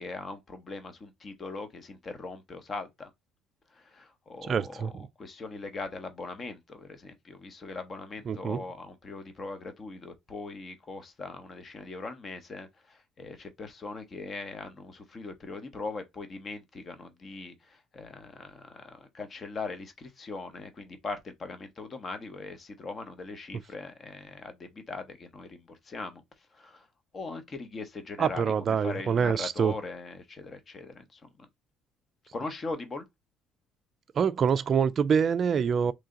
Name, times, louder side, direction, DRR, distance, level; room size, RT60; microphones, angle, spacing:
voice 1, 0.0-3.1 3.7-26.2 26.5-26.9 27.1-31.5 32.3-33.1, left 3 dB, 30° left, 0.9 m, -40 dB
voice 2, 4.4-5.1 8.3-8.6 28.2-29.7 34.2-35.9, right 7 dB, 40° right, 0.3 m, -26 dB
3.1 x 2.8 x 3.7 m
cardioid pair, 120°, 0 cm